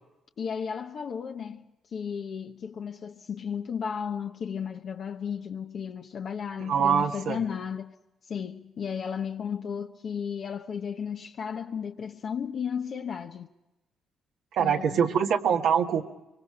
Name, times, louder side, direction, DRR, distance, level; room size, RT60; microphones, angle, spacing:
voice 1, 0.4-1.6 1.9-7.9 8.3-13.5 14.6-15.2, left 7 dB, 55° left, 1.0 m, -34 dB
voice 2, 6.7-7.4 14.6-16.0, right 7 dB, 80° right, 1.5 m, -24 dB
25.5 x 23.0 x 4.8 m
cardioid pair, 90°, 0 cm